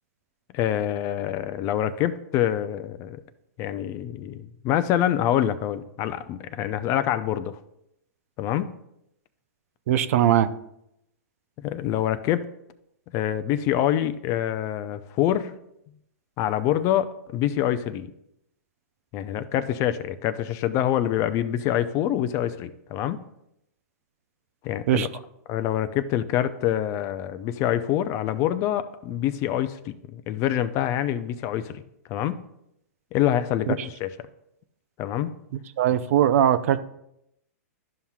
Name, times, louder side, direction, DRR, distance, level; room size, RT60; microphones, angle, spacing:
voice 1, 0.5-3.2 3.6-7.6 8.4-8.7 11.6-12.4 13.1-15.5 16.4-18.1 19.1-23.2 24.6-25.1 25.5-31.8 32.1-32.4 33.1-34.1 35.0-35.3, left 11 dB, 35° left, 13 dB, 0.4 m, -26 dB
voice 2, 9.9-10.5 24.9-25.1 33.7-33.8 35.8-36.8, right 10 dB, 60° right, 12 dB, 0.5 m, -20 dB
12.0 x 5.6 x 2.3 m, 0.80 s
hypercardioid pair, 130°, 9 cm